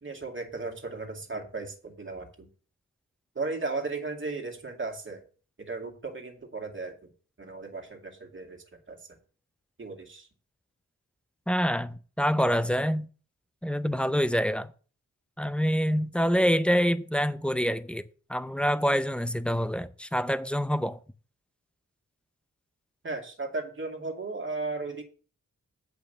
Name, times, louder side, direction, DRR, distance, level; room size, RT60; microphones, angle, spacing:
voice 1, 0.0-2.5 3.4-5.2 5.7-6.9 7.4-9.0 9.8-10.3 23.0-25.0, right 3 dB, 40° right, 2.2 m, -35 dB
voice 2, 11.5-13.1 13.6-14.7 15.4-18.0 18.3-21.0, equal, 5° left, 0.6 m, -26 dB
8.3 x 5.4 x 6.7 m
wide cardioid pair, 90°, 30 cm